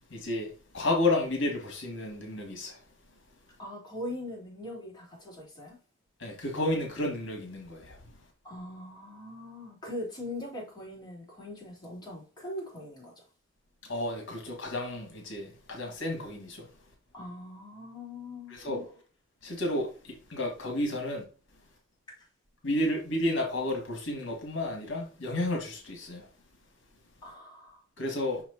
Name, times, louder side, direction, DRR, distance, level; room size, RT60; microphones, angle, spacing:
voice 1, 0.1-0.5 0.7-2.8 6.2-8.0 13.9-16.6 18.5-18.8 19.4-19.9 20.3-21.2 22.6-26.2 28.0-28.4, left 1 dB, 65° left, 1.8 m, -31 dB
voice 2, 3.6-5.8 8.4-13.3 17.1-18.8 27.2-27.8, left 1 dB, 20° left, 3.3 m, -41 dB
6.2 x 5.9 x 2.8 m
head